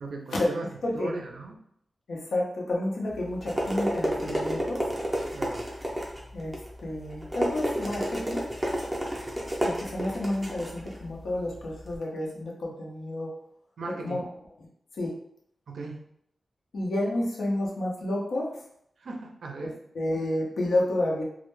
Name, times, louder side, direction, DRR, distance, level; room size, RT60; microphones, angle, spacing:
voice 1, 0.0-0.7 0.9-1.6 5.3-5.7 13.8-14.2 15.7-16.0 19.0-19.8, right 3 dB, 75° right, 2 dB, 0.4 m, -38 dB
voice 2, 0.8-1.1 2.1-4.8 6.3-8.5 9.6-13.3 14.0-14.2 14.9-15.1 16.7-18.5 19.6-21.2, left 1 dB, 85° left, -2 dB, 0.6 m, -30 dB
sound 1, 3.1-12.0, equal, 10° right, 0.4 m, -31 dB
2.1 x 2.0 x 3.0 m, 0.71 s
wide cardioid pair, 165°, 0 cm